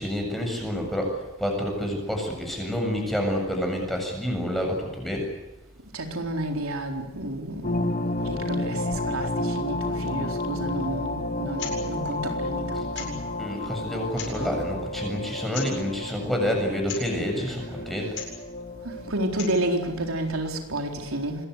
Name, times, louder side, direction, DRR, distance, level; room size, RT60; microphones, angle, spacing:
voice 1, 0.0-5.3 12.8-12.9 13.4-18.1, equal, ahead, 2 dB, 7.5 m, -28 dB
voice 2, 5.9-13.2 18.8-21.4, right 1 dB, 90° right, 3 dB, 4.2 m, -31 dB
sound 1, 7.6-19.8, left 1 dB, 40° left, 1.6 m, -31 dB
sound 2, 11.5-11.8 12.0-12.1 12.9-13.3 14.0-14.5 15.5-15.8 16.8-17.1 18.1-18.4 19.2-19.6, left 7 dB, 55° left, 7.9 m, -37 dB
26.0 x 21.5 x 8.2 m, 1.1 s
head